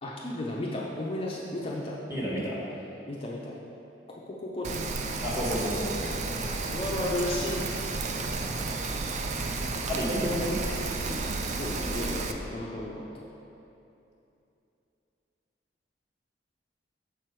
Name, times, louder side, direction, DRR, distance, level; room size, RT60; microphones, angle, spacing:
voice 1, 0.0-2.0 3.1-3.6 4.1-4.9 6.7-7.7 9.6-9.8 10.1-10.2 11.6-13.3, left 1 dB, 30° left, -4 dB, 0.5 m, -34 dB
voice 2, 2.1-2.6 5.2-6.4 9.9-11.4, equal, 15° right, -7 dB, 1.5 m, -31 dB
Rain, 4.6-12.3, right 3 dB, 40° right, 0.3 m, -32 dB
6.7 x 4.5 x 4.7 m, 2.8 s
head